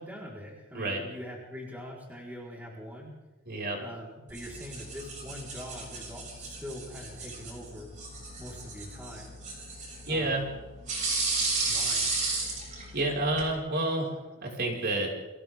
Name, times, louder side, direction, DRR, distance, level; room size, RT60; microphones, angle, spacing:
voice 1, 0.0-3.1 3.8-7.9 8.4-9.4 10.1-10.5 11.6-12.1, equal, 10° right, -4 dB, 4.9 m, -43 dB
voice 2, 3.5-3.8 10.1-10.4 12.9-15.1, right 2 dB, 50° right, -1 dB, 6.0 m, -29 dB
sound 1, 4.3-13.5, right 3 dB, 35° right, 7.5 m, -34 dB
30.0 x 26.0 x 3.9 m, 1.1 s
head